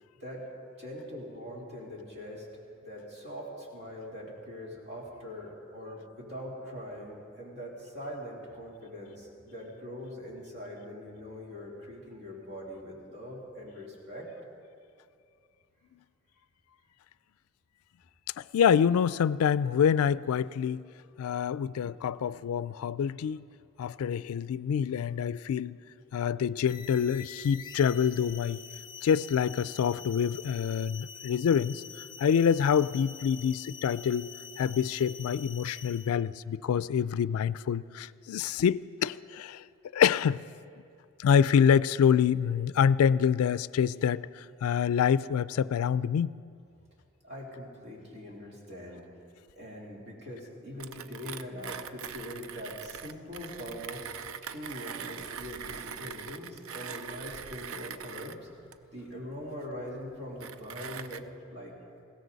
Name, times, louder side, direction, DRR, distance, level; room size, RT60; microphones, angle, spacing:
voice 1, 0.8-2.5 2.8-14.3 47.2-49.0 49.5-54.1 54.4-58.5 58.9-61.7, left 1 dB, 55° right, -3 dB, 3.2 m, -42 dB
voice 2, 18.4-20.9 21.2-23.4 23.8-25.8 26.1-28.6 29.0-31.8 32.2-34.3 34.6-39.6 39.9-40.4 41.2-46.4, left 7 dB, 85° left, 18 dB, 0.3 m, -26 dB
sound 1, 26.7-36.2, left 7 dB, 20° left, 0.7 m, -46 dB
Mechanisms, 50.8-61.2, right 7 dB, 70° right, 0.5 m, -43 dB
20.5 x 16.5 x 4.0 m, 2.4 s
head